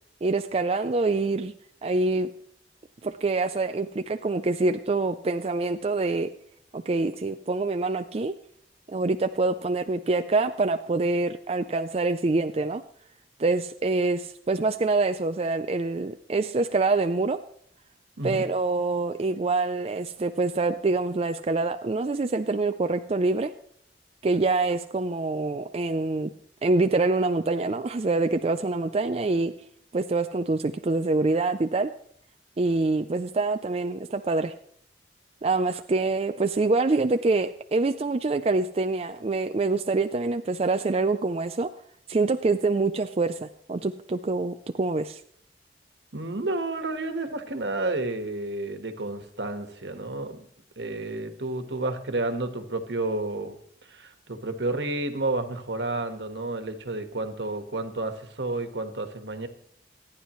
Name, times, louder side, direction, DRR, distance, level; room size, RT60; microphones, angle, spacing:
voice 1, 0.2-1.5 1.8-2.3 3.0-6.3 6.7-8.3 8.9-12.8 13.4-17.4 18.2-23.5 24.2-26.3 26.6-29.5 29.9-31.9 32.6-34.5 35.4-41.7 42.1-45.2, right 3 dB, 35° right, 8 dB, 0.4 m, -25 dB
voice 2, 46.1-50.5 50.8-53.6 53.9-59.5, right 2 dB, 80° right, 7 dB, 1.5 m, -31 dB
26.0 x 9.9 x 3.1 m, 0.64 s
head